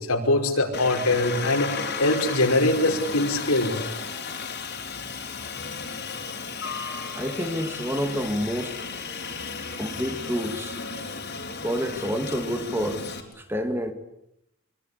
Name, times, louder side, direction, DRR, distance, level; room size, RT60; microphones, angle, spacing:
voice 1, 0.1-3.8, left 2 dB, 85° left, 5.4 m, -23 dB
Aircraft, 0.7-13.2, left 5 dB, 50° left, 4.5 m, -34 dB
voice 2, 7.1-8.8 9.8-10.8 11.6-13.0 13.5-13.9, equal, 10° right, 2.4 m, -28 dB
25.5 x 25.0 x 8.5 m
head